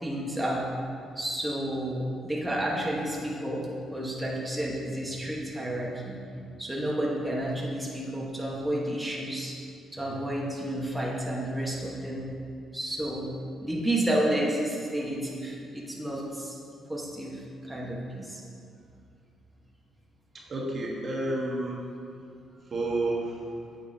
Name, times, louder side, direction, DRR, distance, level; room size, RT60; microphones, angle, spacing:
voice 1, 0.0-0.7 1.1-6.2 6.6-9.6 9.9-12.2 12.7-13.3 13.6-16.6 16.9-18.4, right 1 dB, 10° right, -4 dB, 1.3 m, -31 dB
voice 2, 20.3-21.8 22.7-23.6, right 2 dB, 45° right, -3 dB, 1.3 m, -30 dB
8.2 x 7.3 x 2.8 m, 2.4 s
cardioid pair, 90°, 0 cm